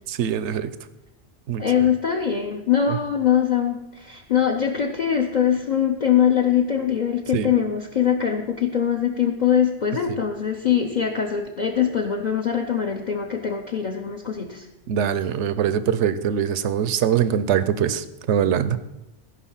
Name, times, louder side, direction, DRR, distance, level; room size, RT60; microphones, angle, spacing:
voice 1, 0.1-0.7 1.5-1.6 7.3-7.5 14.9-18.8, right 9 dB, 75° right, 14 dB, 0.9 m, -22 dB
voice 2, 1.6-14.7, left 8 dB, 45° left, 0 dB, 0.9 m, -22 dB
14.5 x 5.4 x 5.7 m, 0.96 s
omnidirectional pair, 1.2 m